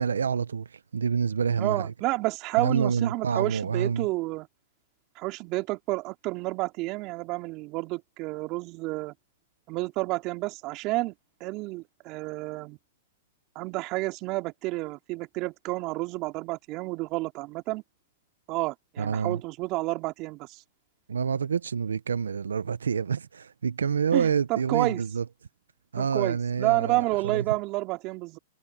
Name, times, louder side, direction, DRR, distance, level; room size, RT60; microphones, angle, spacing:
voice 1, 0.0-1.9 2.6-4.1 19.0-19.4 21.1-25.2 25.9-27.4, right 6 dB, 90° right, 0.8 m, -27 dB
voice 2, 1.6-4.5 5.2-9.1 9.7-11.1 11.4-12.8 13.5-17.8 18.5-20.6 24.1-25.0 26.0-28.4, right 21 dB, 40° right, 2.8 m, -30 dB
hypercardioid pair, 120°, 0 cm